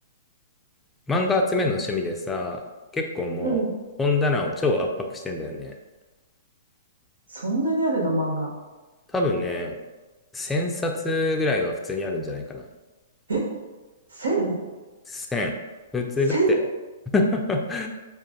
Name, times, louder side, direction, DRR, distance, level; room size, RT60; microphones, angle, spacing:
voice 1, 1.1-2.6 2.9-3.6 4.0-5.7 9.1-9.8 10.3-12.6 15.1-15.5 15.9-16.7 17.1-17.9, left 2 dB, 10° left, 1 dB, 0.4 m, -25 dB
voice 2, 3.4-3.7 7.3-8.5 13.3-13.5 14.1-14.6 16.3-16.5, right 2 dB, 85° right, -2 dB, 1.2 m, -24 dB
5.9 x 2.4 x 2.7 m, 1.2 s
hypercardioid pair, 130°, 0 cm